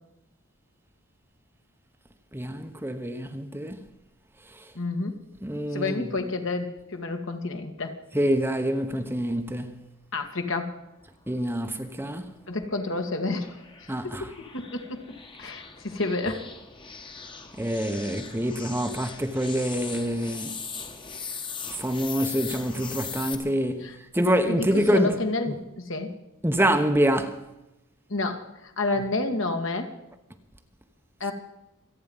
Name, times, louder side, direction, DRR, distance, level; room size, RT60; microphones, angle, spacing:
voice 1, 2.3-3.8 5.4-6.0 8.1-9.8 11.3-12.3 13.9-14.3 17.6-20.6 21.8-25.2 26.4-27.4, equal, 10° right, 1.0 m, -26 dB
voice 2, 4.7-5.2 5.7-8.0 10.1-10.8 12.5-13.6 14.0-16.5 23.8-24.0 24.5-26.2 28.1-30.0 31.2-31.3, left 2 dB, 60° left, 2.1 m, -30 dB
sound 1, 11.8-23.4, left 5 dB, 20° left, 1.4 m, -40 dB
27.0 x 9.4 x 5.5 m
head